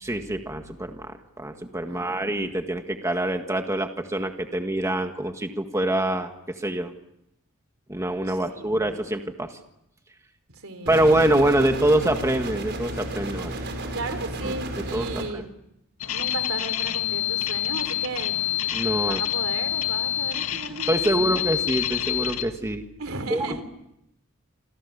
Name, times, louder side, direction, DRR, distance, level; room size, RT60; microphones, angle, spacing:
voice 1, 0.0-6.9 7.9-9.6 10.9-13.6 14.4-14.5 14.9-15.4 18.7-19.2 20.9-22.8 23.3-23.6, right 1 dB, 15° right, 5 dB, 1.7 m, -25 dB
voice 2, 1.9-2.2 8.3-9.0 10.5-11.2 11.6-11.7 13.6-15.5 16.1-18.3 19.0-21.4 23.0-23.6, right 2 dB, 70° right, 9 dB, 3.9 m, -35 dB
sound 1, 10.9-15.3, right 1 dB, 55° right, 5.8 m, -33 dB
sound 2, 16.0-22.4, left 12 dB, 90° left, 2.1 m, -27 dB
28.0 x 27.5 x 7.0 m, 0.82 s
head